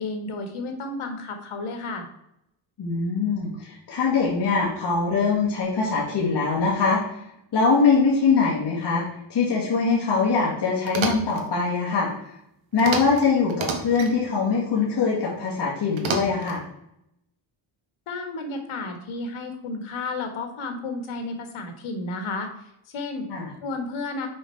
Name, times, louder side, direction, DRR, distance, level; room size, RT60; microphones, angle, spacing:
voice 1, 0.0-2.1 18.1-22.5 22.9-23.3 23.6-24.3, left 3 dB, 90° left, 5 dB, 1.6 m, -32 dB
voice 2, 2.8-7.2 7.5-12.3 12.7-16.6 23.3-23.5, left 4 dB, 55° left, -5 dB, 1.9 m, -23 dB
sound 1, 10.8-11.4 12.8-13.2 13.5-14.1 16.0-16.6, right 5 dB, 70° right, 1.4 m, -29 dB
6.4 x 5.3 x 4.5 m, 0.80 s
wide cardioid pair, 160°, 48 cm